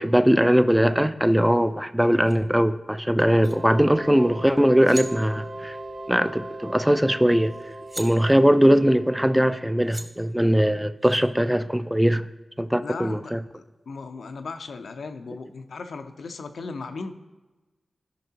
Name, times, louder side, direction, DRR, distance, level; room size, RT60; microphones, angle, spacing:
voice 1, 0.0-5.8 6.1-7.5 8.0-12.3 12.6-13.4, equal, 5° right, 11 dB, 0.4 m, -20 dB
sound 1, 2.2-2.3 3.2-3.5 4.5-4.6 4.8-5.1 7.0-7.1 7.4-8.1 9.5-9.6 9.9-10.1 11.0-11.2, right 1 dB, 25° right, 1.2 m, -38 dB
sound 2, 3.3-9.9, right 1 dB, 40° right, 1.9 m, -39 dB
voice 2, 12.8-17.2, left 4 dB, 80° left, 7 dB, 0.6 m, -37 dB
14.5 x 5.4 x 2.8 m, 1.2 s
cardioid pair, 55°, 0 cm